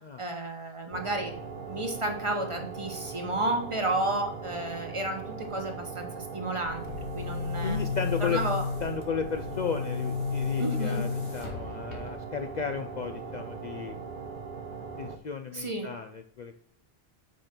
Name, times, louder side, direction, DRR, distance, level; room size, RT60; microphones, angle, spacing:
voice 1, 0.2-1.3 1.6-6.8 7.1-7.8 8.2-8.6 10.6-11.1 15.5-15.9, right 2 dB, 30° right, 4 dB, 1.1 m, -32 dB
sound 1, 0.9-15.2, right 5 dB, 55° right, 0.8 m, -40 dB
Boom, 6.6-12.4, left 5 dB, 85° left, 1.7 m, -33 dB
voice 2, 7.6-8.4 8.8-14.0 15.0-16.6, left 6 dB, 55° left, 6 dB, 0.6 m, -34 dB
6.3 x 5.0 x 5.9 m, 0.63 s
omnidirectional pair, 1.1 m